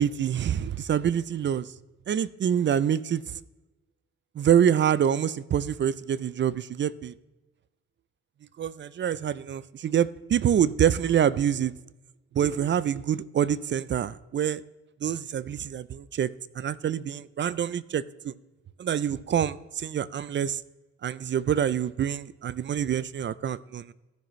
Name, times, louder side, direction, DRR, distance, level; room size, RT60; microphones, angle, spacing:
voice 1, 0.0-1.7 2.1-3.3 4.4-7.1 8.6-11.7 12.3-14.6 15.0-16.3 16.6-18.3 18.8-20.6 21.0-23.9, right 9 dB, 40° right, 18 dB, 0.4 m, -26 dB
14.5 x 6.1 x 3.1 m, 1.1 s
cardioid pair, 90°, 30 cm